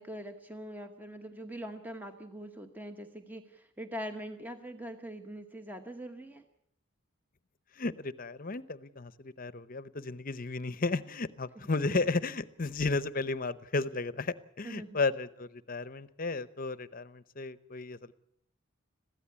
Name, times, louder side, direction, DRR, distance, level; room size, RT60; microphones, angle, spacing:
voice 1, 0.0-6.4 14.6-15.0, equal, 10° right, 6 dB, 1.0 m, -43 dB
voice 2, 7.7-18.1, left 3 dB, 40° left, 15 dB, 0.8 m, -33 dB
22.0 x 15.5 x 8.4 m, 0.73 s
head